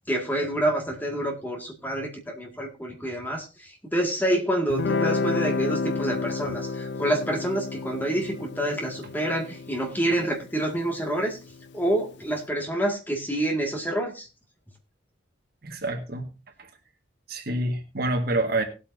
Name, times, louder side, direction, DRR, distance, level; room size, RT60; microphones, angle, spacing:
voice 1, 0.1-11.4 11.7-14.3, right 1 dB, 10° left, 2 dB, 2.0 m, -27 dB
Guitar, 4.7-11.8, left 4 dB, 60° left, 0.5 m, -31 dB
voice 2, 15.6-16.3 16.6-16.7 17.3-18.6, right 2 dB, 55° right, 5 dB, 1.8 m, -27 dB
19.0 x 8.6 x 2.7 m, 0.29 s
head